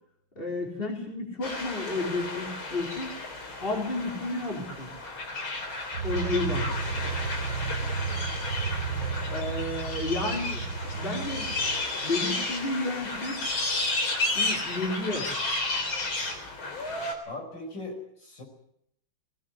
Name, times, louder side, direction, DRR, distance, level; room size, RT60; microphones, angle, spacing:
voice 1, 0.4-3.1 3.6-4.9 6.0-6.7 9.3-11.5 12.0-13.5 14.3-15.3, left 2 dB, 25° left, 0 dB, 4.5 m, -31 dB
sound 1, 1.4-17.1, left 2 dB, 80° left, 4.4 m, -32 dB
sound 2, 5.9-11.8, right 5 dB, 70° right, 3.6 m, -33 dB
voice 2, 17.3-18.4, left 2 dB, 60° left, 2 dB, 5.8 m, -39 dB
20.5 x 17.0 x 9.8 m, 0.74 s
omnidirectional pair, 2.2 m